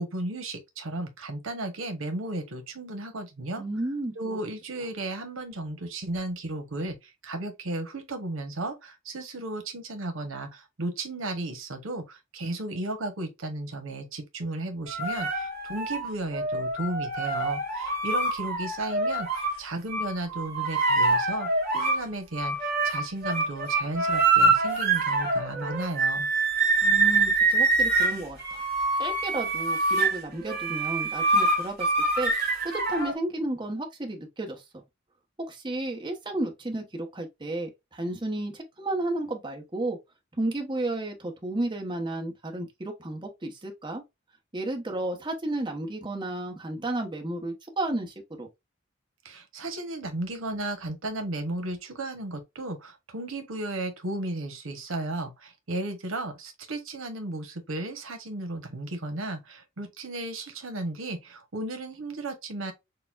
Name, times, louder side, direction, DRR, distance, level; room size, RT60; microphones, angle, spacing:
voice 1, 0.0-3.6 4.1-26.3 49.2-62.7, right 2 dB, 85° right, 1.0 m, -34 dB
voice 2, 3.6-4.4 26.8-28.6 29.0-31.9 32.2-32.3 32.6-34.8 35.4-40.0 40.4-44.0 44.5-48.5, right 2 dB, 25° right, 1.0 m, -32 dB
sound 1, 14.9-19.6 19.9-22.0 22.4-33.2, right 3 dB, 50° right, 2.2 m, -25 dB
6.6 x 2.2 x 2.4 m
head